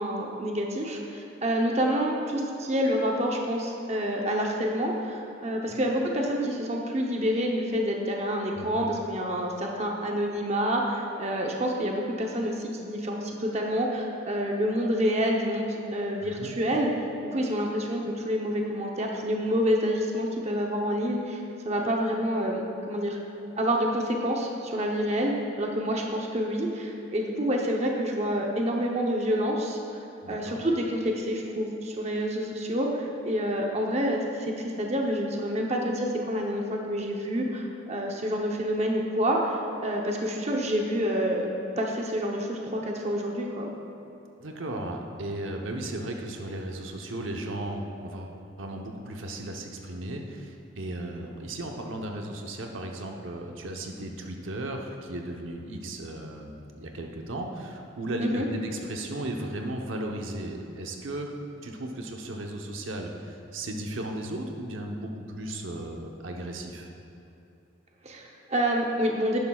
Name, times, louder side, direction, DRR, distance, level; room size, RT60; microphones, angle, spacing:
voice 1, 0.0-16.9 17.2-23.2 23.6-25.3 25.6-29.8 30.3-41.5 41.8-43.7 58.2-58.5 68.0-69.4, equal, 35° right, 0 dB, 0.8 m, -28 dB
voice 2, 8.6-8.9 16.2-16.5 30.2-30.6 44.4-61.3 61.6-66.9, right 1 dB, 80° right, 2 dB, 0.9 m, -35 dB
11.5 x 10.5 x 2.4 m, 2.9 s
head